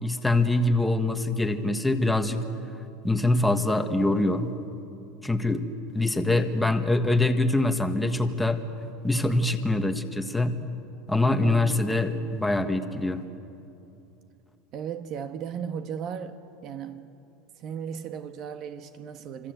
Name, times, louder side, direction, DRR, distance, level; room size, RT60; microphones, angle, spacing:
voice 1, 0.0-2.4 3.0-4.5 5.2-5.6 5.9-8.6 9.0-10.5 11.1-13.2, left 2 dB, 5° left, 1.4 m, -24 dB
voice 2, 11.4-12.3 14.7-17.1 17.6-19.5, right 7 dB, 40° right, 1.3 m, -36 dB
28.5 x 25.5 x 8.0 m
supercardioid pair, 155°, 0 cm